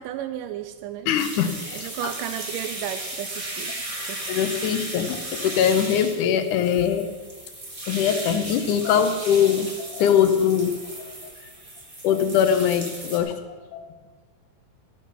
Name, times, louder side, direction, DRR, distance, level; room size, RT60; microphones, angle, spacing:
voice 1, 0.0-1.1 1.7-4.2, right 12 dB, 80° right, 8 dB, 2.1 m, -34 dB
voice 2, 1.1-1.9 4.3-7.1 7.9-10.7 11.1-11.2 12.0-13.3 13.7-13.9, left 8 dB, 75° left, 9 dB, 2.1 m, -22 dB
sound 1, 1.2-13.2, right 1 dB, 40° right, 0.4 m, -35 dB
13.0 x 9.2 x 5.6 m, 1.5 s
omnidirectional pair, 4.0 m